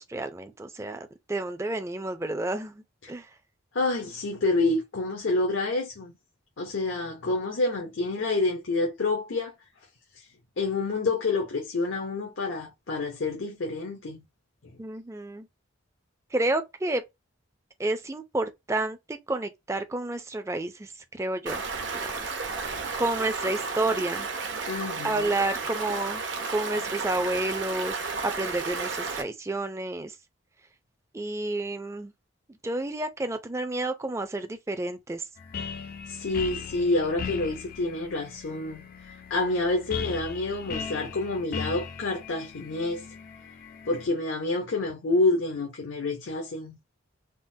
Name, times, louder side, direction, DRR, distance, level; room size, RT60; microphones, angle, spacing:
voice 1, 0.0-3.3 14.8-15.5 16.3-17.0 17.8-21.6 21.9-22.3 22.7-24.3 25.0-26.2 26.5-30.2 31.1-32.1 32.6-35.2, right 2 dB, 15° right, 0.4 m, -30 dB
voice 2, 3.7-6.1 6.6-9.5 10.1-10.3 10.6-14.2 24.7-25.3 36.1-43.0 43.9-46.8, left 2 dB, 80° left, 0.7 m, -28 dB
Stream, 21.5-29.2, right 4 dB, 65° right, 0.7 m, -33 dB
sound 1, 35.4-44.1, left 6 dB, 45° left, 0.4 m, -38 dB
3.6 x 2.1 x 2.6 m
head